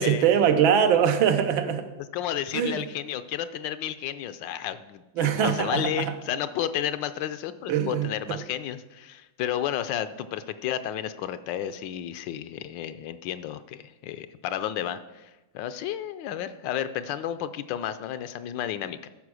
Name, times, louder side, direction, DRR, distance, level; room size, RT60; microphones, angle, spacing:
voice 1, 0.0-1.9 2.5-2.8 5.2-6.1 7.7-8.4, right 8 dB, 85° right, 8 dB, 1.6 m, -23 dB
voice 2, 2.1-19.1, left 10 dB, 75° left, 12 dB, 1.2 m, -32 dB
13.0 x 5.1 x 6.2 m, 1.1 s
omnidirectional pair, 2.1 m